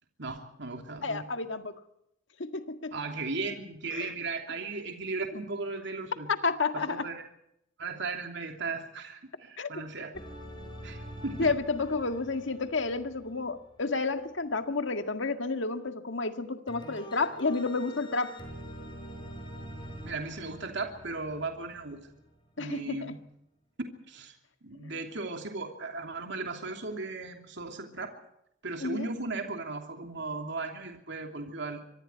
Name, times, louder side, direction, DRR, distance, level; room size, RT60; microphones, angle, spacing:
voice 1, 0.2-1.2 2.9-6.3 6.9-7.2 7.8-10.1 10.8-11.5 20.0-22.0 22.6-23.2 24.1-24.3 24.6-28.1 28.6-31.8, right 3 dB, 65° right, 3.0 m, -36 dB
voice 2, 1.0-1.8 2.4-2.9 3.9-4.1 6.4-7.1 9.6-9.7 11.4-18.4 22.6-23.1 24.8-24.9 28.8-29.1, left 3 dB, 70° left, 1.9 m, -31 dB
sound 1, 10.1-14.3 16.7-22.3, equal, 25° left, 5.9 m, -45 dB
24.5 x 24.0 x 4.6 m
head